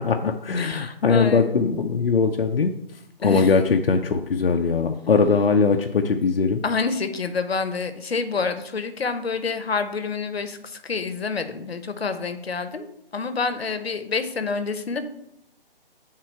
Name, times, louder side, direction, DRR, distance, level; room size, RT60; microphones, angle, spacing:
voice 1, 0.1-2.7 3.2-6.6, left 5 dB, 70° left, 4 dB, 0.6 m, -20 dB
voice 2, 0.6-1.6 3.2-3.5 6.6-15.1, left 4 dB, 85° left, 9 dB, 0.9 m, -28 dB
7.5 x 3.7 x 4.4 m, 0.79 s
hypercardioid pair, 175°, 30 cm